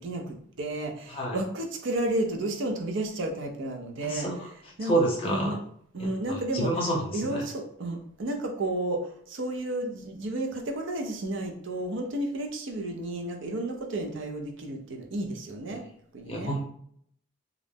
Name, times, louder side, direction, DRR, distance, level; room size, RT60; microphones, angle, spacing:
voice 1, 0.0-4.3 4.8-5.0 5.2-5.6 5.9-6.7 7.1-15.8 16.1-16.5, right 1 dB, 60° right, 3 dB, 0.4 m, -32 dB
voice 2, 4.8-5.5 6.0-7.4 16.3-16.6, right 1 dB, 25° left, -3 dB, 0.6 m, -28 dB
2.4 x 2.0 x 3.3 m, 0.66 s
head